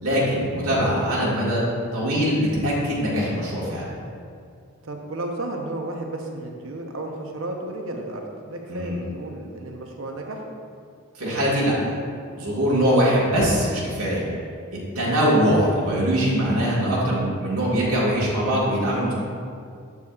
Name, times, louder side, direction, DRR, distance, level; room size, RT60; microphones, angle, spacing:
voice 1, 0.0-1.7 1.9-3.8 8.7-9.0 11.2-12.0 12.4-14.2 15.0-19.1, equal, 90° right, -6 dB, 1.7 m, -22 dB
voice 2, 4.8-10.5, right 2 dB, 65° right, 2 dB, 0.8 m, -33 dB
8.1 x 7.1 x 2.4 m, 2.2 s
head